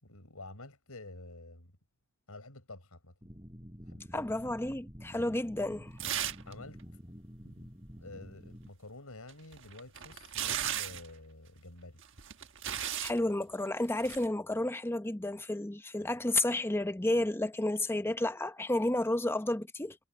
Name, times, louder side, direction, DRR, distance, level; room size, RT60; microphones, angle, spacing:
voice 1, 0.0-1.7 2.3-3.1 3.9-4.2 6.5-6.8 7.4-7.7 7.9-12.0, left 2 dB, 80° left, 6.1 m, -49 dB
sound 1, 3.2-8.7, equal, 20° right, 5.1 m, -49 dB
voice 2, 4.1-5.9 13.0-20.0, left 1 dB, 10° left, 0.7 m, -31 dB
sound 2, 6.0-6.5 6.8-6.9 9.3-11.1 12.0-13.2 14.0-14.3, right 10 dB, 60° right, 1.4 m, -36 dB
head